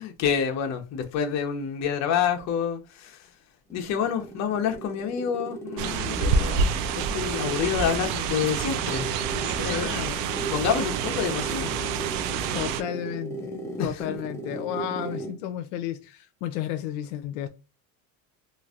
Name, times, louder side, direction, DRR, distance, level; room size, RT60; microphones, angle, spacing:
voice 1, 0.0-3.2 3.7-6.7 7.0-9.9 10.4-11.7 13.8-14.0, left 7 dB, 45° left, 0.8 m, -28 dB
sound 1, 3.7-15.5, right 2 dB, 10° left, 0.5 m, -36 dB
sound 2, 5.8-12.8, right 6 dB, 65° right, 0.5 m, -28 dB
voice 2, 9.6-10.3 12.5-17.5, left 11 dB, 85° left, 0.6 m, -33 dB
3.1 x 2.5 x 2.4 m
cardioid pair, 130°, 37 cm